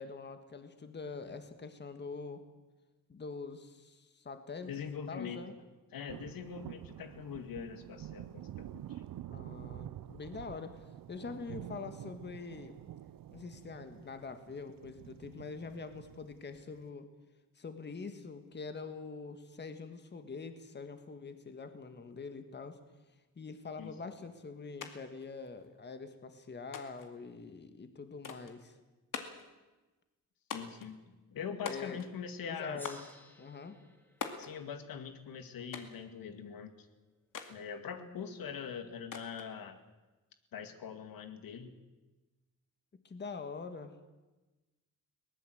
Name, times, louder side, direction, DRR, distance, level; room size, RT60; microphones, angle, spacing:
voice 1, 0.0-2.4 3.1-5.5 9.3-12.8 13.3-17.1 17.5-22.8 23.3-28.8 31.6-32.0 32.4-33.0 33.4-33.8 43.0-43.9, left 4 dB, 30° left, 8 dB, 1.7 m, -44 dB
voice 2, 4.7-5.4 5.9-9.0 23.8-23.9 30.5-31.0 31.3-32.8 34.4-36.9 37.5-39.8 40.5-41.7, left 7 dB, 85° left, 8 dB, 2.2 m, -43 dB
sound 1, 6.1-16.9, right 12 dB, 75° right, 0.7 m, -48 dB
sound 2, 24.8-24.9 25.2-26.0 26.7-27.1 28.2-28.6 29.1-29.5 30.5-30.9 31.7-32.2 32.8-33.1 34.2-34.5 35.7-36.0 37.3-37.6 39.1-39.5, left 6 dB, 65° left, 2.4 m, -43 dB
Gong, 32.7-37.5, equal, 5° left, 2.4 m, -59 dB
22.0 x 19.0 x 7.9 m, 1.1 s
wide cardioid pair, 155°, 34 cm